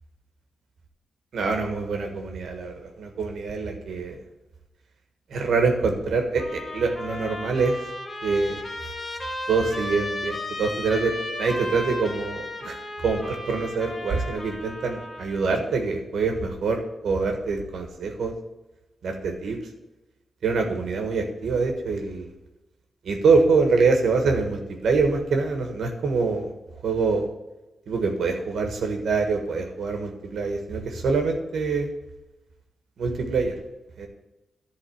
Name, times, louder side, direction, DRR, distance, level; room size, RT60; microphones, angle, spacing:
voice 1, 1.3-4.2 5.3-7.7 8.2-8.6 9.5-11.1 11.4-18.3 19.0-19.6 20.4-22.3 23.0-26.5 26.8-27.3 27.9-31.9 33.0-33.5 34.0-34.1, right 4 dB, 80° right, 4 dB, 1.3 m, -25 dB
Trumpet, 6.4-15.5, left 1 dB, 20° left, 1.4 m, -35 dB
11.0 x 3.8 x 7.7 m, 1.0 s
wide cardioid pair, 135°, 0 cm